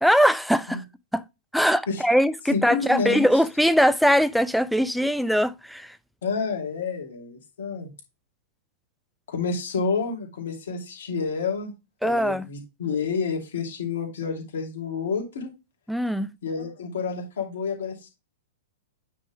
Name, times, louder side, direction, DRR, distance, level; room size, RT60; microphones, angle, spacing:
voice 1, 0.0-0.8 1.1-1.2 1.5-6.0 12.0-12.5 15.9-16.3, equal, ahead, 0.4 m, -21 dB
voice 2, 2.5-3.2 6.2-7.9 9.3-11.7 12.0-15.5 16.4-18.1, left 5 dB, 60° left, 2.5 m, -29 dB
9.0 x 3.8 x 3.1 m
figure-of-eight pair, 100°, 0 cm